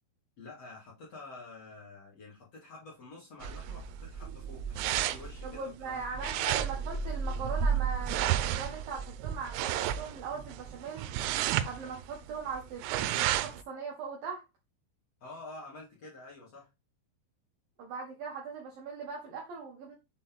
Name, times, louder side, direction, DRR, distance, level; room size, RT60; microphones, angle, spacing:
voice 1, 0.4-6.4 15.2-16.7, left 3 dB, 45° left, -6 dB, 2.3 m, -48 dB
sound 1, 3.4-13.6, right 9 dB, 90° right, 3.2 m, -32 dB
voice 2, 5.4-11.1 11.6-14.4 17.8-19.9, right 5 dB, 70° right, 0 dB, 2.2 m, -40 dB
7.3 x 4.1 x 3.6 m, 0.25 s
omnidirectional pair, 5.7 m